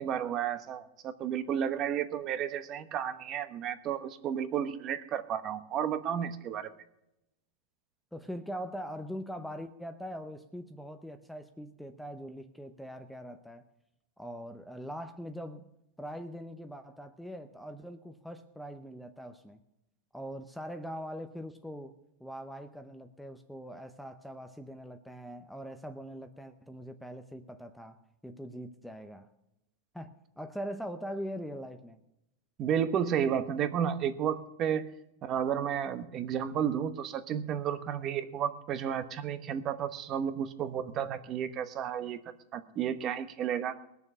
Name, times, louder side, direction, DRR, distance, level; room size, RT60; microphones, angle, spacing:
voice 1, 0.0-6.7 32.6-34.9 35.2-42.2 42.5-43.7, right 9 dB, 30° right, 11 dB, 1.1 m, -32 dB
voice 2, 8.1-13.6 14.2-15.7 16.0-19.6 20.1-28.0 28.2-29.3 29.9-30.1 30.4-32.0, equal, ahead, 7 dB, 0.7 m, -42 dB
20.0 x 7.0 x 6.7 m, 0.85 s
supercardioid pair, 150°, 0 cm